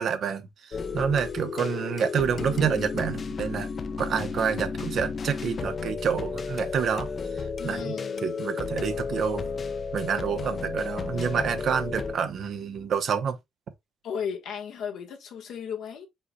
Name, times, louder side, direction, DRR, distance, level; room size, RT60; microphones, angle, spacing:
voice 1, 0.0-3.7 4.0-7.1 7.6-9.5 9.9-13.4, right 7 dB, 65° right, 0.8 m, -28 dB
sound 1, 0.7-12.2, left 5 dB, 45° left, 0.7 m, -33 dB
voice 2, 7.6-8.3 14.0-16.1, left 7 dB, 80° left, 1.3 m, -35 dB
5.5 x 4.0 x 2.3 m
cardioid pair, 90°, 0 cm